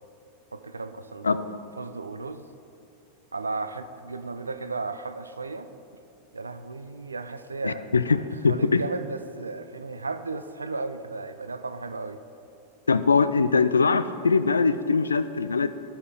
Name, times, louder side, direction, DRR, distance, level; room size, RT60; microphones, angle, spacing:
voice 1, 0.5-2.4 3.3-5.7 6.3-12.2, right 3 dB, 80° right, 10 dB, 0.4 m, -35 dB
voice 2, 7.6-8.2 8.4-8.8 12.9-15.7, left 4 dB, 75° left, 13 dB, 0.3 m, -22 dB
14.0 x 4.9 x 3.6 m, 2.8 s
figure-of-eight pair, 90°, 0 cm